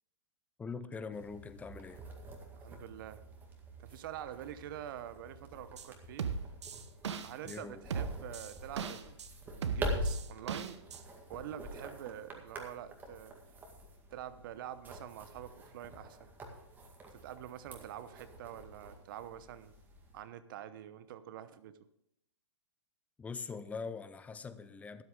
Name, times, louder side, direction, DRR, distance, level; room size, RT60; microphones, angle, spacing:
voice 1, 0.6-2.0 7.4-7.8 23.2-25.0, left 5 dB, 10° left, 0.6 m, -43 dB
sound 1, 1.1-20.2, equal, 10° right, 2.0 m, -45 dB
voice 2, 2.6-3.2 3.8-6.3 7.2-9.2 9.4-10.8 11.3-13.3 14.1-16.3 17.1-19.7 20.1-21.8, right 11 dB, 45° right, 0.9 m, -46 dB
sound 2, 5.8-5.9 6.2-7.6 7.9-9.3 9.6-11.0 11.3-11.4, right 6 dB, 65° right, 1.0 m, -37 dB
13.0 x 12.0 x 3.8 m
hypercardioid pair, 125°, 15 cm